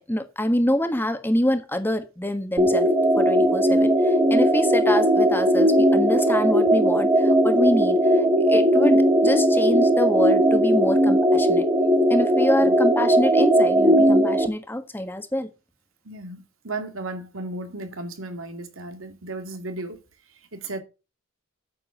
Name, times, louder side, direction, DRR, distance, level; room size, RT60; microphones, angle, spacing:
voice 1, 0.0-2.9 3.2-11.6 12.1-15.5, left 1 dB, 10° left, 1.4 m, -26 dB
sound 1, 2.6-14.5, equal, 20° right, 1.2 m, -18 dB
voice 2, 16.0-20.0 20.5-20.8, right 2 dB, 90° right, 2.3 m, -35 dB
9.2 x 7.3 x 5.7 m
head